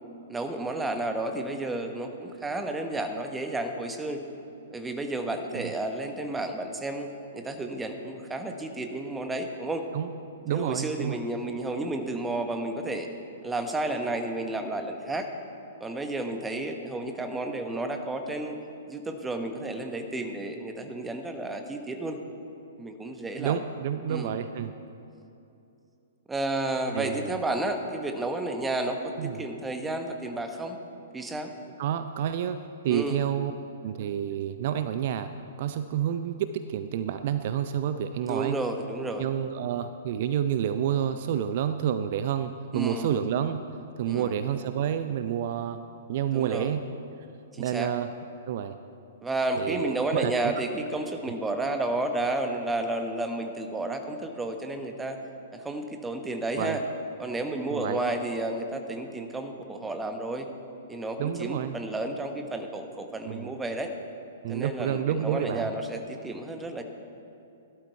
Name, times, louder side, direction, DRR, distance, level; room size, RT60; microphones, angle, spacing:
voice 1, 0.3-4.2 4.7-9.9 10.5-13.1 13.4-15.3 15.8-18.6 18.9-22.2 22.8-23.6 24.1-24.3 26.3-30.8 31.1-31.5 32.9-33.2 38.3-39.3 42.7-43.2 44.1-44.3 46.3-46.7 47.5-47.9 49.2-55.2 55.5-56.8 57.2-60.5 60.9-63.9 64.5-66.8, right 2 dB, 10° right, 5 dB, 1.2 m, -31 dB
voice 2, 10.4-11.2 23.4-24.7 26.9-27.3 29.2-29.4 31.8-32.6 32.8-33.5 33.8-35.3 35.6-38.6 39.2-43.6 44.0-45.8 46.1-46.8 47.6-48.1 48.5-48.8 49.6-50.5 56.5-56.8 57.7-58.0 61.2-61.8 63.2-63.5 64.4-65.7, right 9 dB, 45° right, 10 dB, 0.5 m, -29 dB
17.0 x 12.0 x 4.6 m, 2.8 s
figure-of-eight pair, 110°, 0 cm